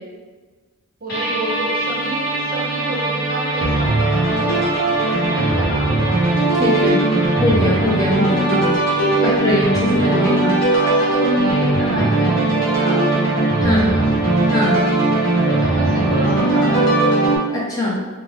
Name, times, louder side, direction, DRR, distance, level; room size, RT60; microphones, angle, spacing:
voice 1, 1.0-4.8 5.0-6.2 6.6-7.0 8.9-9.4 10.0-10.4 10.7-13.2 13.6-14.1 15.4-17.2, right 1 dB, 45° right, -3 dB, 0.8 m, -29 dB
sound 1, 1.1-17.4, right 2 dB, 50° left, 1.1 m, -18 dB
voice 2, 6.6-7.0 7.4-8.8 9.2-10.6 13.6-13.9 14.5-14.8 17.5-17.9, left 1 dB, 15° left, -4 dB, 0.5 m, -21 dB
4.0 x 2.2 x 3.5 m, 1.4 s
head